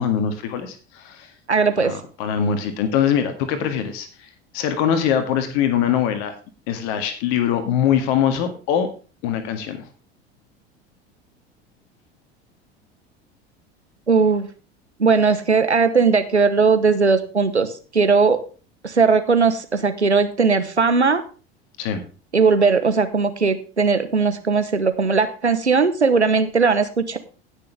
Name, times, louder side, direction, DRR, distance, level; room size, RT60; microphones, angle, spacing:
voice 1, 0.0-1.3 1.8-6.3 6.7-8.9 9.2-9.9 21.8-22.0, left 8 dB, 55° left, 9 dB, 1.9 m, -22 dB
voice 2, 1.5-2.0 14.1-14.5 15.0-18.4 18.8-21.2 22.3-27.2, right 4 dB, 90° right, 10 dB, 1.1 m, -18 dB
17.0 x 6.7 x 3.4 m, 0.35 s
figure-of-eight pair, 75°, 33 cm